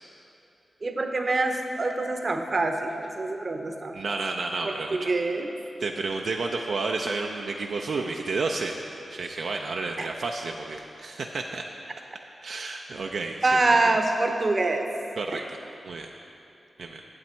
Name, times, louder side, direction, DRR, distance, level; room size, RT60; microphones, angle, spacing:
voice 1, 0.8-4.0 4.6-5.5 10.0-10.1 13.4-14.9 15.3-15.4, right 2 dB, 50° right, 5 dB, 0.7 m, -25 dB
voice 2, 3.9-5.1 5.8-8.8 9.1-11.6 12.4-13.6 15.2-15.6 15.8-16.1 16.8-17.0, right 3 dB, 80° right, 2 dB, 0.4 m, -31 dB
8.7 x 7.2 x 4.4 m, 2.7 s
cardioid pair, 55°, 0 cm